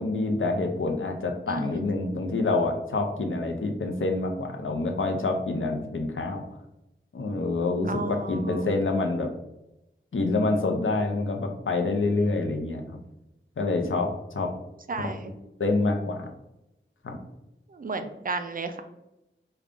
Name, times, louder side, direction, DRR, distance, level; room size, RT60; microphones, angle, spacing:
voice 1, 0.0-6.4 7.1-9.3 10.1-13.0 13.6-14.5 15.0-15.1 15.6-16.3 17.0-17.2, left 3 dB, 75° left, 3 dB, 0.6 m, -27 dB
voice 2, 1.5-1.8 7.8-8.6 14.9-15.3 17.7-18.8, right 3 dB, 45° right, 8 dB, 0.4 m, -33 dB
3.6 x 2.3 x 3.6 m, 0.91 s
wide cardioid pair, 65°, 21 cm